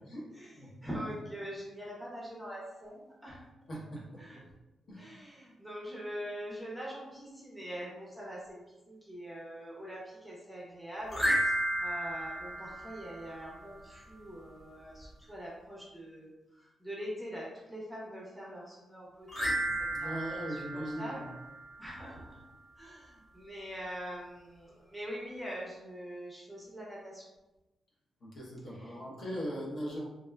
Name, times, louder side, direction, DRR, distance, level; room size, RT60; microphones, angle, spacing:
voice 1, 0.8-3.4 4.2-4.4 5.0-11.5 11.8-19.5 19.8-21.3 21.8-22.4 22.8-27.2 28.8-28.9, equal, ahead, -5 dB, 0.6 m, -43 dB
voice 2, 3.7-4.2 4.9-5.0 19.9-21.3 28.2-30.0, equal, 55° left, -4 dB, 0.7 m, -39 dB
sound 1, 11.1-13.6 19.3-21.9, right 1 dB, 25° left, 1.2 m, -33 dB
3.3 x 2.3 x 2.2 m, 1.0 s
wide cardioid pair, 165°, 0 cm